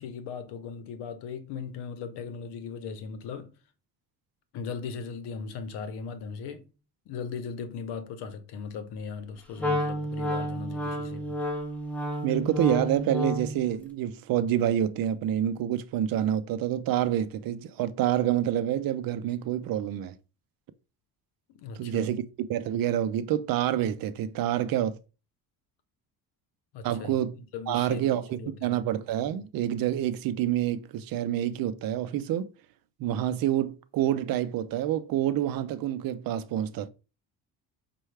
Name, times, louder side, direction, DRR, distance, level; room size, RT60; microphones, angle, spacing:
voice 1, 0.0-3.6 4.5-6.7 7.1-11.4 21.5-22.1 26.7-28.8, left 6 dB, 80° left, 0.8 m, -38 dB
Wind instrument woodwind instrument, 9.6-13.6, equal, 5° left, 0.8 m, -30 dB
voice 2, 12.2-20.1 21.8-22.2 22.5-25.0 26.8-27.3 27.7-28.2 28.6-32.5 33.0-36.9, right 11 dB, 60° right, 0.5 m, -27 dB
5.4 x 2.3 x 3.2 m
cardioid pair, 115°, 40 cm